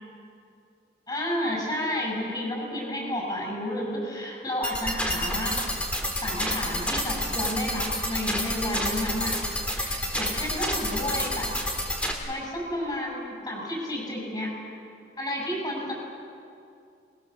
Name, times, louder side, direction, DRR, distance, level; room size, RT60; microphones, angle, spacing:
voice 1, 1.1-5.6 6.1-9.3 9.7-11.5 12.3-14.5 15.2-15.9, left 1 dB, 25° left, -2 dB, 7.7 m, -31 dB
sound 1, 4.6-12.1, equal, 5° left, 2.7 m, -29 dB
28.5 x 21.5 x 7.4 m, 2.5 s
head